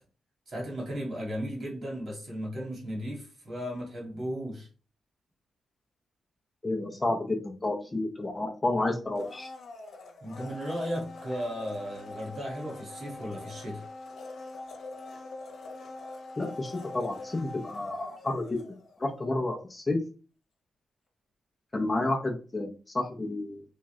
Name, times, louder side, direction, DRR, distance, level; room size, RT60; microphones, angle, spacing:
voice 1, 0.5-4.7 10.2-13.8, equal, 45° right, 1.7 m, -35 dB
voice 2, 6.6-9.5 16.4-18.6 19.0-20.0 21.7-23.6, left 2 dB, 20° left, 0.6 m, -30 dB
Domestic sounds home sounds, 9.1-19.1 19.4-19.5, left 2 dB, 65° left, 1.0 m, -43 dB
3.6 x 2.5 x 3.1 m
cardioid pair, 120°, 0 cm